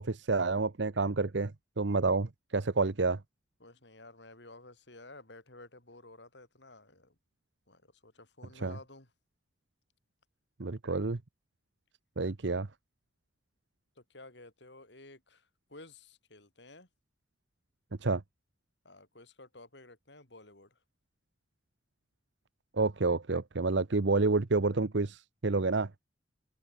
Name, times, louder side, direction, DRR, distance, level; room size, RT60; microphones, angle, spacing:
voice 1, 0.0-3.2 8.6-8.7 10.6-11.2 12.2-12.7 18.0-18.2 22.7-25.9, right 3 dB, 80° right, 0.9 m, -29 dB
voice 2, 3.6-7.2 7.7-9.1 14.0-16.9 18.8-20.8, left 2 dB, 75° left, 6.0 m, -53 dB
head